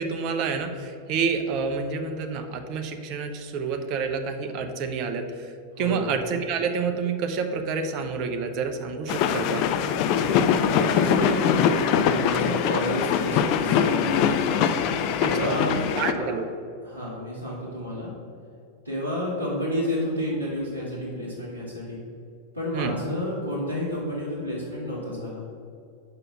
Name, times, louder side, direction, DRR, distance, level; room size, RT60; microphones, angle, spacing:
voice 1, 0.0-9.6 15.2-15.6 15.9-16.4 22.7-23.0, right 5 dB, 40° right, 6 dB, 0.7 m, -28 dB
voice 2, 5.7-6.1 10.1-14.3 15.2-16.3 16.8-18.1 18.8-22.0 22.5-25.4, left 1 dB, 85° left, -8 dB, 1.7 m, -30 dB
sound 1, 9.1-16.1, left 8 dB, 45° left, 0.4 m, -23 dB
5.9 x 4.9 x 6.2 m, 2.4 s
figure-of-eight pair, 90°, 0 cm